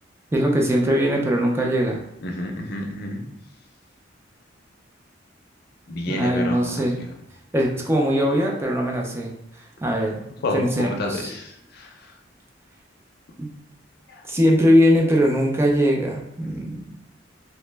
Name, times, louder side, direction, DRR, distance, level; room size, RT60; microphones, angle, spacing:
voice 1, 0.3-2.0 6.1-7.0 7.5-9.3 9.8-10.2 10.5-11.3 13.4-13.5 14.3-16.8, equal, 15° right, 0 dB, 0.4 m, -20 dB
voice 2, 2.2-3.2 5.9-7.1 10.4-10.6 11.0-11.9 14.1-14.2, left 1 dB, 55° left, 2 dB, 0.5 m, -30 dB
2.8 x 2.1 x 3.2 m, 0.81 s
head